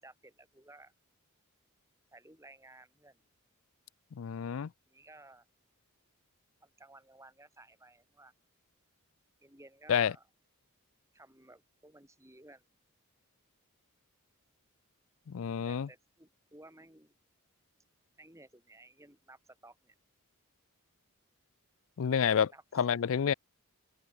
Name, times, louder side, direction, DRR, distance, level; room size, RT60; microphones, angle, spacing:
voice 1, 0.0-0.9 2.1-3.2 4.9-5.5 6.6-8.3 9.4-10.3 11.1-12.6 15.6-17.2 18.2-20.0 22.2-22.9, right 2 dB, 15° right, 7.0 m, -56 dB
voice 2, 4.2-4.7 9.9-10.1 15.3-15.9 22.0-22.5 22.7-23.3, left 7 dB, 65° left, 0.4 m, -29 dB
head